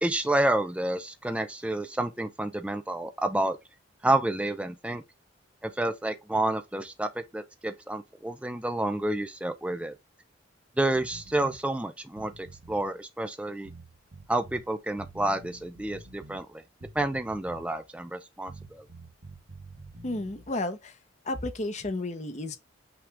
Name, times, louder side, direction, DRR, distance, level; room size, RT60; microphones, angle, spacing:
voice 1, 0.0-3.6 4.0-5.0 5.6-9.9 10.8-13.7 14.3-16.6 16.9-18.8, right 1 dB, 5° right, 0.4 m, -29 dB
sound 1, 10.9-11.6 12.1-12.9 13.7-14.7 15.0-16.4 16.8-17.8 18.5-20.5, right 2 dB, 65° right, 1.1 m, -48 dB
voice 2, 20.0-20.9 21.2-22.6, left 2 dB, 35° left, 0.8 m, -32 dB
6.0 x 2.4 x 3.4 m
head